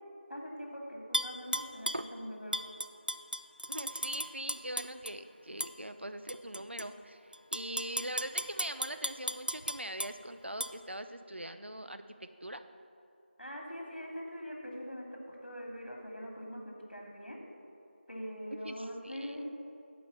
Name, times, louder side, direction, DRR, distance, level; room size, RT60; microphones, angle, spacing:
voice 1, 0.3-2.6 13.4-17.4 18.1-19.5, equal, 60° left, -1 dB, 2.3 m, -43 dB
Tap / Glass, 1.1-2.1 2.5-5.1 5.6-5.7 6.3-6.9 7.3-10.1 10.6-10.7, right 1 dB, 50° right, 0.3 m, -35 dB
voice 2, 3.7-12.6 18.6-19.4, right 1 dB, 80° right, 9 dB, 0.7 m, -42 dB
10.0 x 5.0 x 7.1 m, 2.6 s
figure-of-eight pair, 180°, 6 cm